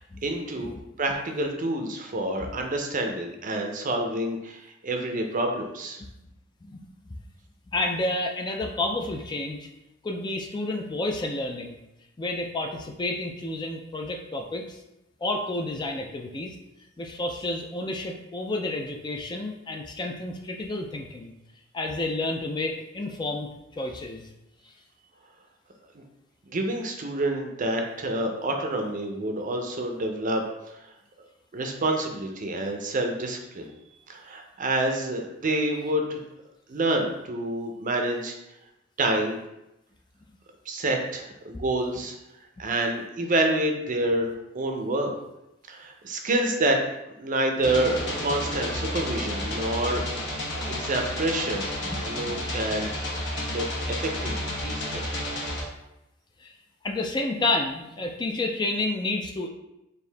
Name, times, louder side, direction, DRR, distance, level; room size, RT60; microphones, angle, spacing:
voice 1, 0.2-6.0 25.9-26.0 26.5-30.4 31.5-33.7 34.1-36.2 36.7-38.4 39.0-39.4 40.7-42.1 42.6-45.1 45.7-46.8 47.2-48.0 48.2-50.1 50.5-51.7 52.0-52.9 53.4-55.1, right 1 dB, 40° right, 3 dB, 0.5 m, -28 dB
voice 2, 6.6-7.2 7.7-9.7 10.0-11.8 12.2-14.8 15.2-16.5 17.0-21.3 21.7-24.2 51.8-52.0 52.3-52.4 56.4-56.5 56.8-59.5, left 2 dB, 20° left, 2 dB, 0.3 m, -30 dB
sound 1, 47.6-55.6, left 1 dB, 60° left, 1.0 m, -31 dB
4.5 x 2.6 x 3.3 m, 0.89 s
head